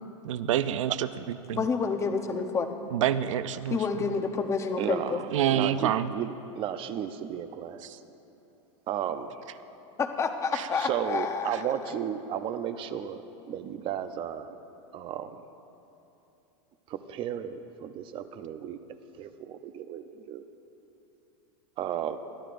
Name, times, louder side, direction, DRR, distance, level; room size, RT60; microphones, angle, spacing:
voice 1, 0.2-1.1 1.5-1.6 2.9-3.8 5.3-6.1 7.8-8.0, right 10 dB, 85° right, 13 dB, 0.5 m, -27 dB
voice 2, 1.5-2.7 3.7-5.2 10.0-11.7, left 5 dB, 20° left, 5 dB, 0.8 m, -29 dB
voice 3, 4.8-7.8 8.9-9.4 10.8-13.2 13.5-14.6 14.9-15.4 16.9-18.8 19.2-20.4 21.8-22.2, right 9 dB, 35° right, 10 dB, 0.6 m, -34 dB
21.5 x 14.0 x 2.6 m, 2.9 s
supercardioid pair, 135°, 16 cm